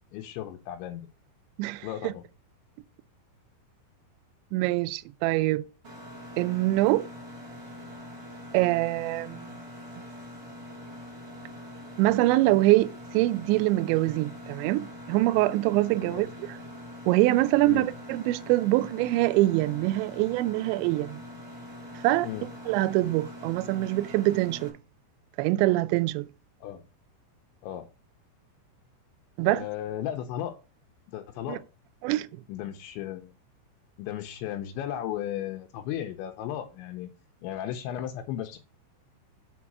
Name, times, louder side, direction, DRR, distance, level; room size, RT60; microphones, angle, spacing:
voice 1, 0.1-1.1 1.8-2.2 16.0-16.3 17.7-17.9 22.2-22.5 26.6-26.8 27.6-27.9 29.4-30.6 31.1-31.6 32.5-33.3 34.0-37.1 37.4-38.6, left 11 dB, 80° left, 2.9 m, -35 dB
voice 2, 1.6-2.1 4.5-5.6 6.4-7.1 8.5-9.5 12.0-16.6 17.1-21.2 22.0-24.7 25.4-26.3 29.4-29.6 31.5-31.6 32.0-32.3, right 18 dB, 85° right, 2.7 m, -24 dB
Mechanisms, 5.8-24.7, left 1 dB, 25° right, 2.5 m, -43 dB
7.3 x 4.7 x 6.0 m
omnidirectional pair, 5.6 m